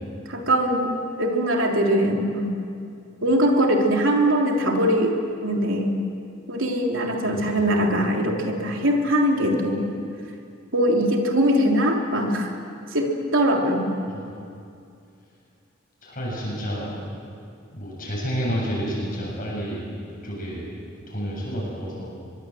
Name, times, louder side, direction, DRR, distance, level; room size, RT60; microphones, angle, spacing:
voice 1, 0.3-2.6 3.2-6.0 6.5-9.9 10.7-12.5 12.9-13.9, equal, 75° right, 1 dB, 3.3 m, -22 dB
voice 2, 7.3-7.7 14.1-14.3 16.0-17.0 17.7-19.9 20.2-20.7 21.1-22.1, equal, 45° left, -4 dB, 7.6 m, -30 dB
24.0 x 22.5 x 7.8 m, 2.4 s
head